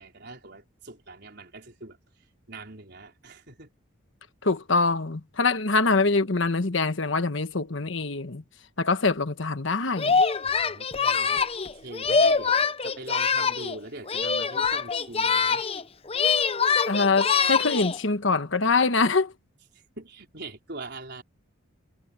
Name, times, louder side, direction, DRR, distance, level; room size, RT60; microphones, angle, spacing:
voice 1, 0.0-3.7 10.4-11.4 11.7-15.6 19.7-21.2, right 2 dB, 55° right, 4.7 m, -43 dB
voice 2, 4.4-8.4 8.8-10.2 16.9-19.3, left 3 dB, 65° left, 1.3 m, -24 dB
Singing, 10.0-13.8 14.1-15.8 16.1-18.0, left 5 dB, 30° left, 0.7 m, -24 dB
head